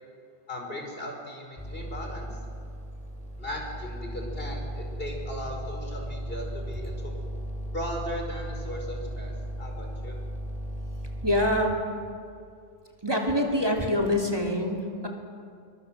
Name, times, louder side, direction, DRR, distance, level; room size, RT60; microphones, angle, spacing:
voice 1, 0.5-2.3 3.4-7.3 7.7-10.2, equal, 65° left, 1 dB, 5.1 m, -37 dB
sound 1, 1.6-11.6, equal, 5° left, 4.6 m, -36 dB
voice 2, 11.2-11.8 13.0-15.1, left 1 dB, 25° right, 0 dB, 3.2 m, -25 dB
27.5 x 23.5 x 7.5 m, 2.4 s
omnidirectional pair, 1.0 m